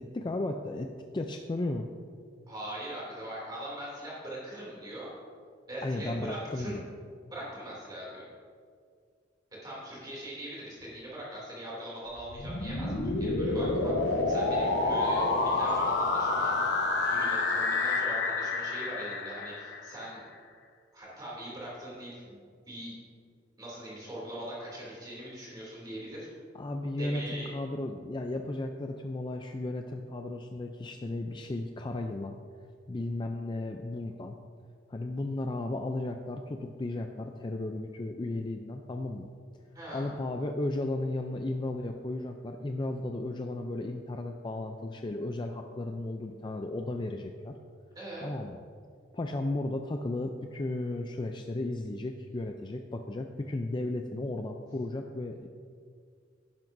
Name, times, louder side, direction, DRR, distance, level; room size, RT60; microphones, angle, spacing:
voice 1, 0.0-1.9 5.8-6.8 26.5-32.4 32.9-34.4 34.9-39.3 39.9-47.5 48.2-48.6 49.1-55.5, left 2 dB, 25° left, 4 dB, 0.4 m, -34 dB
voice 2, 2.5-5.1 5.7-6.8 7.3-8.3 9.6-20.2 20.9-22.4 22.7-23.0 23.6-26.3 27.0-27.5 39.7-40.1 47.9-48.3, right 1 dB, 20° right, -6 dB, 2.7 m, -41 dB
sound 1, 12.2-20.1, left 3 dB, 65° left, 1.1 m, -29 dB
12.0 x 10.5 x 2.6 m, 2.1 s
head